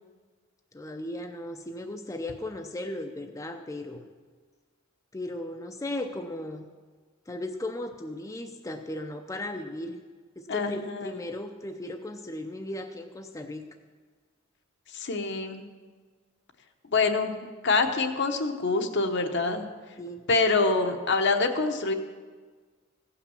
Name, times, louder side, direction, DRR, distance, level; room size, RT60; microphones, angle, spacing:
voice 1, 0.7-4.1 5.1-6.7 7.3-10.0 10.4-13.7 20.0-20.2, left 1 dB, 15° left, 4 dB, 0.5 m, -36 dB
voice 2, 10.5-11.1 14.9-15.7 16.9-19.6 20.3-21.9, left 3 dB, 60° left, 5 dB, 1.0 m, -26 dB
15.5 x 5.9 x 6.9 m, 1.5 s
head